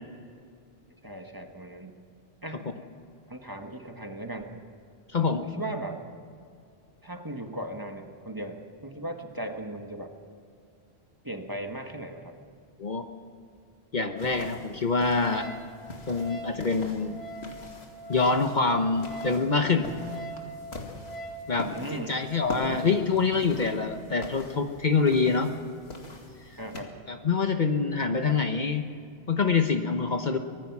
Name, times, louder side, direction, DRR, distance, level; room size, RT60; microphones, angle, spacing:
voice 1, 1.0-2.0 2.4-2.6 3.3-4.6 5.4-6.0 7.0-10.1 11.2-12.4 21.6-22.2 26.6-26.9, right 1 dB, 20° right, 4 dB, 1.4 m, -37 dB
voice 2, 5.1-5.4 12.8-13.1 13.9-15.5 16.1-17.2 18.1-19.9 21.5-25.5 27.1-28.9 29.3-30.4, left 4 dB, 45° left, 6 dB, 1.1 m, -25 dB
sound 1, 14.2-26.8, left 2 dB, 75° left, 2.5 m, -43 dB
Wind instrument woodwind instrument, 15.3-21.5, right 1 dB, 30° left, 2.3 m, -42 dB
24.0 x 19.0 x 6.0 m, 2.3 s
omnidirectional pair, 1.1 m